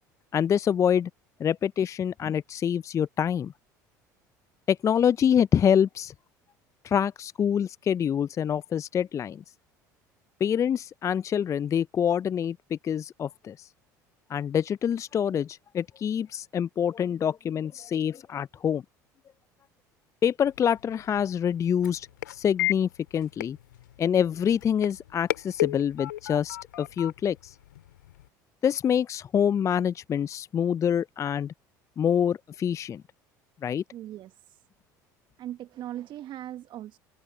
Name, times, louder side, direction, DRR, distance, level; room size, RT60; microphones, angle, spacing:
voice 1, 0.3-1.1 1.4-3.5 4.7-6.1 6.8-9.4 10.4-13.7 14.3-18.8 20.2-23.6 24.0-27.6 28.6-31.5 32.0-33.0 33.6-33.8, left 8 dB, 30° left, 0.3 m, -26 dB
sound 1, 20.4-28.3, left 14 dB, 85° left, 2.1 m, -35 dB
voice 2, 33.9-34.6 35.4-37.0, right 12 dB, 50° right, 1.2 m, -39 dB
open air
hypercardioid pair, 70°, 10 cm